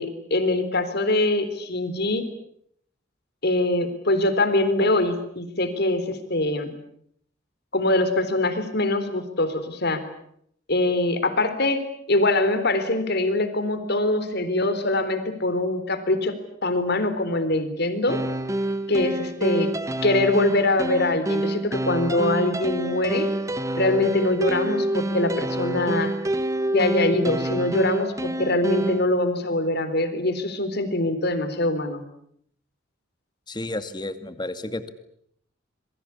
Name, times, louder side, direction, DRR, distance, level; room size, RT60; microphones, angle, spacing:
voice 1, 0.0-2.3 3.4-6.7 7.7-10.0 10.7-11.8 12.1-16.3 16.6-18.2 18.9-19.7 20.0-23.3 23.7-26.1 26.7-32.0, left 2 dB, 55° left, 10 dB, 4.0 m, -23 dB
sound 1, 18.1-29.0, right 1 dB, 15° right, 1.4 m, -27 dB
voice 2, 33.5-34.9, left 1 dB, 20° left, 10 dB, 2.2 m, -31 dB
27.5 x 23.0 x 8.5 m, 0.70 s
head